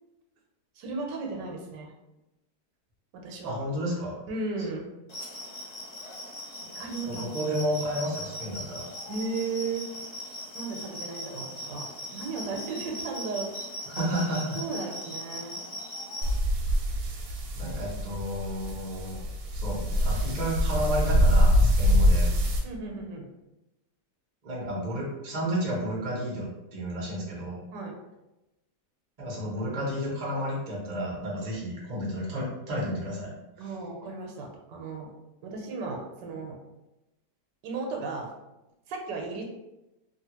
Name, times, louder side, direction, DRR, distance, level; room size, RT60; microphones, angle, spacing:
voice 1, 0.8-1.9 3.1-3.5 4.3-4.9 6.7-7.2 9.1-9.9 10.5-11.9 12.1-13.5 14.5-15.5 22.6-23.3 27.7-27.9 33.6-35.1 35.4-36.5 37.6-38.3 38.9-39.4, right 3 dB, 85° right, 1 dB, 1.2 m, -35 dB
voice 2, 3.4-4.2 7.1-8.9 13.9-14.6 17.6-19.2 19.5-22.3 24.4-27.6 29.2-33.3, equal, 35° right, -4 dB, 0.7 m, -31 dB
sound 1, 5.1-16.3, equal, 40° left, 0.6 m, -39 dB
sound 2, 16.2-22.6, equal, 70° right, 1.1 m, -24 dB
3.0 x 2.4 x 2.9 m, 0.98 s
omnidirectional pair, 1.8 m